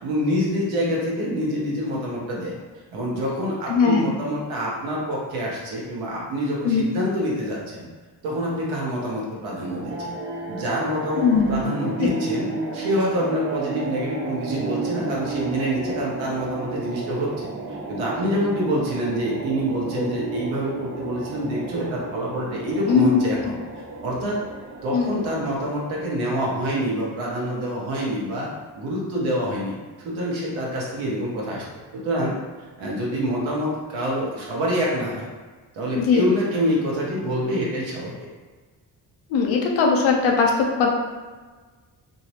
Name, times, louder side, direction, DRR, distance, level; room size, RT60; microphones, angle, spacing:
voice 1, 0.0-2.5 2.9-7.9 8.2-10.1 10.5-17.5 17.9-23.6 24.0-24.4 24.8-29.8 30.0-31.6 31.9-32.3 32.8-35.3 35.7-38.1, equal, 85° right, -4 dB, 0.8 m, -26 dB
voice 2, 3.7-4.0 6.6-6.8 11.2-11.7 12.0-12.1 20.0-20.1 22.9-23.2 24.9-25.2 36.0-36.2 39.3-40.9, left 5 dB, 80° left, 0 dB, 0.6 m, -20 dB
sound 1, 9.5-26.1, right 3 dB, 25° right, 0.6 m, -33 dB
2.6 x 2.0 x 2.7 m, 1.3 s
supercardioid pair, 60°, 46 cm